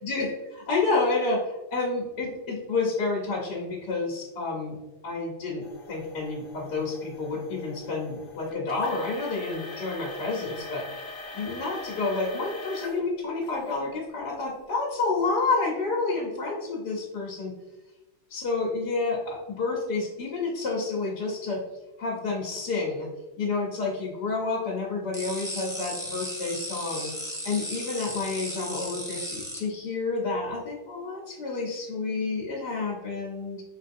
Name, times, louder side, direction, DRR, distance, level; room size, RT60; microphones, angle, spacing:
voice 1, 0.0-4.8 5.0-10.9 11.3-17.5 18.3-21.6 22.0-23.1 23.4-27.1 27.4-33.6, left 3 dB, 85° left, -4 dB, 1.5 m, -29 dB
sound 1, 5.6-13.0 13.4-13.8 14.4-14.5 15.2-15.3, left 2 dB, 45° left, 0.8 m, -42 dB
sound 2, 25.1-29.6, equal, 5° right, 0.4 m, -35 dB
5.0 x 3.3 x 2.6 m, 1.1 s
omnidirectional pair, 1.7 m